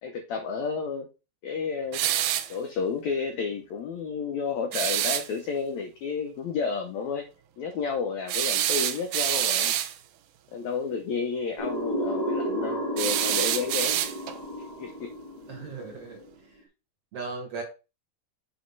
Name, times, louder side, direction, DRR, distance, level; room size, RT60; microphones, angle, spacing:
voice 1, 0.0-1.1 1.4-2.0 2.5-7.2 7.6-9.8 10.5-14.0 14.8-15.1, left 5 dB, 90° left, 5 dB, 1.6 m, -31 dB
sound 1, 1.9-2.5 4.7-5.3 8.3-9.9 13.0-14.4, right 12 dB, 80° right, 1.9 m, -26 dB
sound 2, 11.6-16.3, equal, 30° left, 0.7 m, -32 dB
voice 2, 15.5-16.3 17.1-17.6, right 4 dB, 60° right, 1 dB, 1.7 m, -37 dB
8.3 x 3.0 x 5.3 m, 0.29 s
omnidirectional pair, 4.3 m